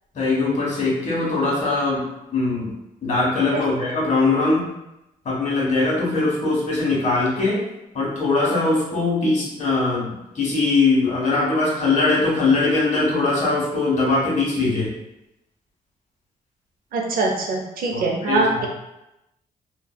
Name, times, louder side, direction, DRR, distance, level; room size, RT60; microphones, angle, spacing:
voice 1, 0.1-2.0 2.3-2.7 3.0-4.6 5.2-7.6 7.9-14.9 17.9-18.7, left 3 dB, 50° left, -4 dB, 1.1 m, -21 dB
voice 2, 16.9-18.7, right 3 dB, 70° right, 0 dB, 0.5 m, -23 dB
2.6 x 2.3 x 2.2 m, 0.90 s
cardioid pair, 65°, 16 cm